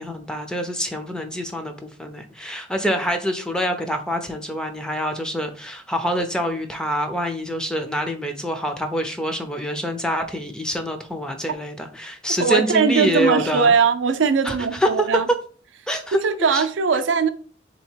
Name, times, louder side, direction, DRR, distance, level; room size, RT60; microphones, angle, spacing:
voice 1, 0.0-13.7 14.4-15.1 15.9-16.2 16.5-16.6, equal, 5° left, 0.5 m, -26 dB
voice 2, 12.4-15.3 16.1-17.3, right 5 dB, 85° right, 0.4 m, -20 dB
3.6 x 2.8 x 4.4 m
head